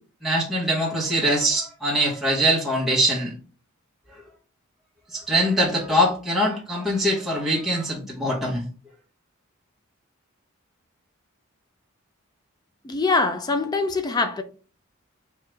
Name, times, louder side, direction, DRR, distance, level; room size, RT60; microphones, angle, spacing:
voice 1, 0.2-3.3 4.1-4.2 5.1-8.6, equal, ahead, 1.0 m, -23 dB
voice 2, 12.8-14.4, left 3 dB, 20° left, 0.3 m, -23 dB
4.4 x 2.4 x 3.2 m
head